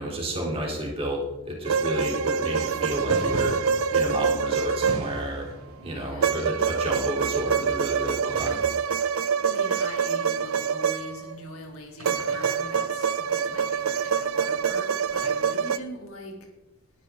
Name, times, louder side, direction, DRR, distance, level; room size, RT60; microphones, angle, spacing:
voice 1, 0.0-3.6 3.9-5.5 5.8-8.6, right 1 dB, 25° right, -2 dB, 3.6 m, -31 dB
sound 1, 1.7-5.5 6.2-11.4 12.0-15.8, right 6 dB, 70° right, 0.5 m, -26 dB
sound 2, 1.7-11.0 12.0-13.9 15.2-15.3, right 2 dB, 90° right, 2.7 m, -41 dB
voice 2, 5.8-6.3 9.4-16.4, left 1 dB, 80° left, 1 dB, 3.1 m, -42 dB
20.0 x 10.5 x 3.9 m, 1.0 s
head